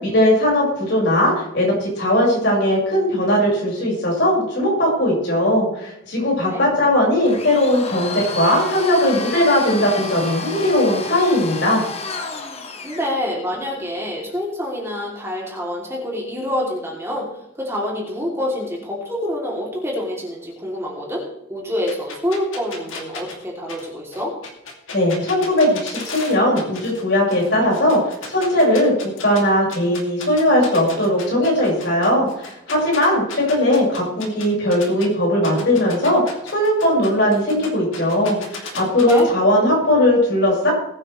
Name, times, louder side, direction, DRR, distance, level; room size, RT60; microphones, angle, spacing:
voice 1, 0.0-11.8 24.9-28.9 29.2-40.7, left 1 dB, 55° left, -3 dB, 5.9 m, -18 dB
Domestic sounds home sounds, 7.3-13.1, left 3 dB, 30° left, 1.1 m, -31 dB
voice 2, 12.8-17.3 17.6-21.2 21.5-24.3 39.1-39.3, left 1 dB, 15° right, -3 dB, 3.1 m, -26 dB
sound 1, 21.9-27.0 27.3-29.4 29.7-35.1 35.4-39.2, left 4 dB, 85° left, 2.7 m, -35 dB
20.5 x 8.9 x 3.3 m, 0.83 s
head